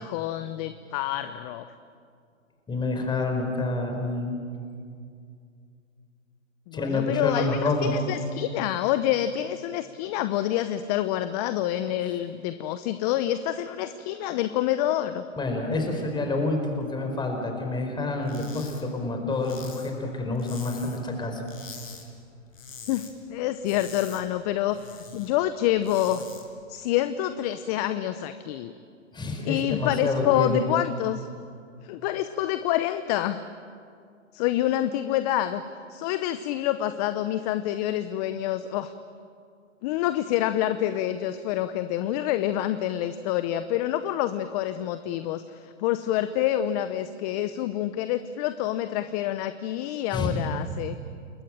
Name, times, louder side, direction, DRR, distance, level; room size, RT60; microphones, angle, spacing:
voice 1, 0.0-1.7 6.7-15.2 22.9-26.2 26.7-28.7 29.4-31.3 31.8-33.4 34.3-35.6 35.9-38.9 39.8-51.0, left 12 dB, 30° left, 12 dB, 0.8 m, -27 dB
voice 2, 2.7-4.3 6.7-8.1 15.4-21.4 29.1-30.6 50.1-50.4, left 2 dB, 10° left, 3 dB, 4.5 m, -28 dB
sound 1, 18.2-18.8 19.1-21.1 21.4-22.0 22.4-23.1 23.4-25.3 25.7-26.4, left 5 dB, 80° left, 5.8 m, -44 dB
29.0 x 21.5 x 8.8 m, 2.4 s
hypercardioid pair, 135°, 39 cm